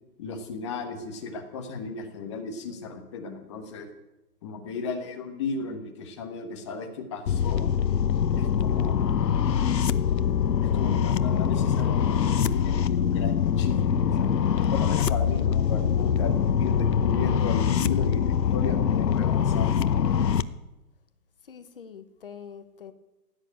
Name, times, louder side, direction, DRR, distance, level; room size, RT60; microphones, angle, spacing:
voice 1, 0.2-3.9 4.4-7.7 8.3-9.3 10.6-14.3 14.7-19.8, left 4 dB, 20° left, 4 dB, 1.3 m, -35 dB
sound 1, 7.3-20.4, left 8 dB, 85° left, 1.0 m, -24 dB
voice 2, 21.4-22.9, left 7 dB, 35° left, 11 dB, 1.0 m, -44 dB
16.0 x 9.5 x 8.9 m, 1.0 s
hypercardioid pair, 165°, 48 cm